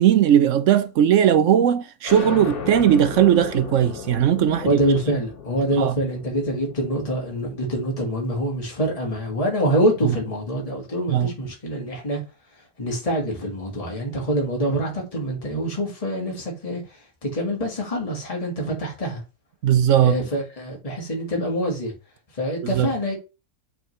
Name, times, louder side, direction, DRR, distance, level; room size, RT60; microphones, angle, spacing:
voice 1, 0.0-4.8 5.7-6.0 10.0-10.2 11.1-11.3 19.6-20.2 22.6-22.9, right 10 dB, 65° right, 0.9 m, -18 dB
sound 1, 2.0-9.3, left 6 dB, 75° left, 1.8 m, -36 dB
voice 2, 4.6-12.2 12.8-16.8 17.2-19.2 20.0-21.9 22.3-23.2, equal, 25° left, 1.9 m, -25 dB
8.6 x 3.7 x 3.2 m
omnidirectional pair, 1.6 m